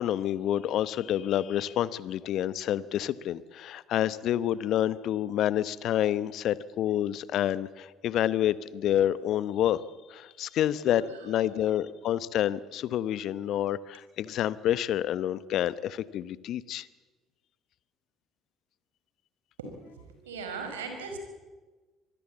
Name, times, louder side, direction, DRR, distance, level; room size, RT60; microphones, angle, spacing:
voice 1, 0.0-9.8 10.1-16.9, left 11 dB, 60° left, 18 dB, 0.9 m, -28 dB
voice 2, 11.4-11.7 19.6-19.8 20.1-21.2, right 4 dB, 80° right, 5 dB, 4.7 m, -39 dB
25.5 x 20.5 x 8.5 m, 1.3 s
figure-of-eight pair, 55°, 0 cm